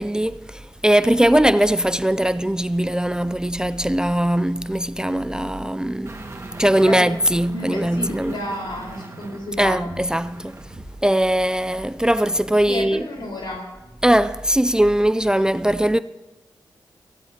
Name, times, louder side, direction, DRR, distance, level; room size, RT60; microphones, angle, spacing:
voice 1, 0.0-6.2 6.6-8.4 9.6-10.6 11.0-13.0 14.0-16.0, right 1 dB, 10° right, 0.4 m, -20 dB
sound 1, 6.1-11.0 11.3-11.4, right 2 dB, 35° right, 1.7 m, -39 dB
voice 2, 7.5-9.9 12.7-13.6, left 1 dB, 80° left, 4.4 m, -31 dB
22.5 x 15.5 x 2.8 m
cardioid pair, 60°, 8 cm